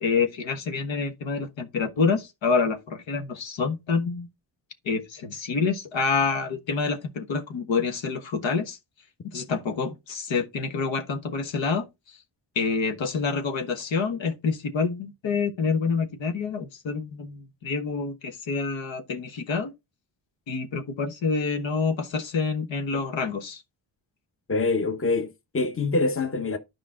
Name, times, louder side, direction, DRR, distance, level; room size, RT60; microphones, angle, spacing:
voice 1, 0.0-4.3 4.8-8.8 9.3-12.2 12.5-19.7 20.5-23.6, left 5 dB, 75° left, 1.4 m, -27 dB
voice 2, 24.5-26.6, left 3 dB, 30° left, 1.1 m, -25 dB
10.0 x 5.1 x 3.7 m
cardioid pair, 75°, 45 cm